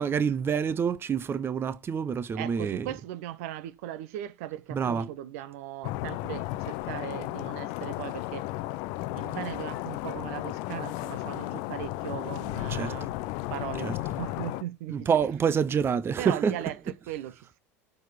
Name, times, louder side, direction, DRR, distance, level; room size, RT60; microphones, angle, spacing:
voice 1, 0.0-2.9 4.7-5.1 12.7-13.1 13.8-14.0 14.9-16.5, right 7 dB, 30° right, 0.7 m, -27 dB
voice 2, 2.3-8.5 9.2-13.1 13.5-15.3 16.2-17.6, right 12 dB, 65° right, 0.9 m, -38 dB
sound 1, 5.8-14.6, left 17 dB, 60° left, 0.5 m, -34 dB
6.6 x 4.5 x 5.2 m
hypercardioid pair, 80°, 8 cm